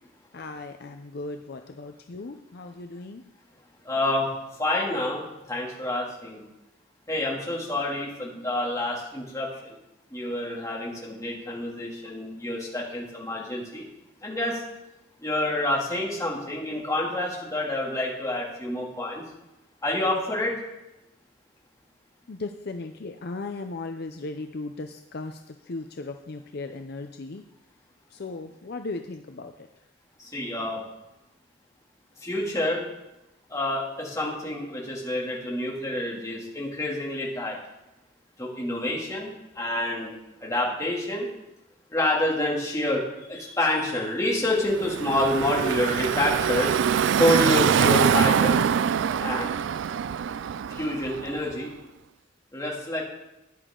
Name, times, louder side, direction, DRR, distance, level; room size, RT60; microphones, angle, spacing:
voice 1, 0.3-3.2 22.3-27.4 28.1-29.7, left 3 dB, 55° left, 6 dB, 0.6 m, -37 dB
voice 2, 3.8-4.3 4.6-6.5 7.1-9.8 10.1-13.9 14.2-14.6 15.2-19.2 19.8-20.6 30.2-30.8 32.2-32.8 33.5-37.6 38.4-40.1 40.4-41.3 41.9-43.0 43.3-46.8 47.1-48.6 49.2-49.5 50.7-51.7 52.5-53.0, left 1 dB, 15° left, -4 dB, 2.6 m, -28 dB
Car passing by / Traffic noise roadway noise, 44.6-51.5, right 7 dB, 70° right, 0.3 m, -24 dB
14.0 x 10.0 x 3.8 m, 0.96 s
head